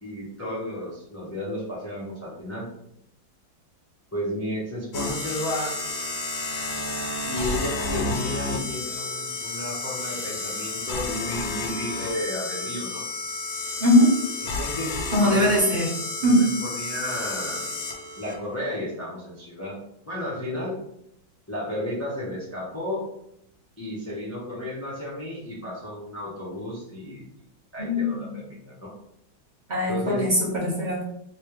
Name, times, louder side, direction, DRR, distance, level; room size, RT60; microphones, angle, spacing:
voice 1, 0.0-2.7 4.1-5.8 7.3-13.0 14.4-15.5 16.2-17.7 18.1-19.8 20.0-20.8 21.5-23.1 23.8-27.2 27.7-28.9 29.9-30.3, left 1 dB, 25° left, -7 dB, 0.3 m, -33 dB
sound 1, 4.9-18.3, left 3 dB, 65° left, 1.0 m, -31 dB
voice 2, 13.8-14.1 15.1-15.9 16.2-16.5 27.8-28.3 29.7-31.0, left 1 dB, 35° right, -5 dB, 0.8 m, -20 dB
3.3 x 3.0 x 3.0 m, 0.76 s
omnidirectional pair, 2.1 m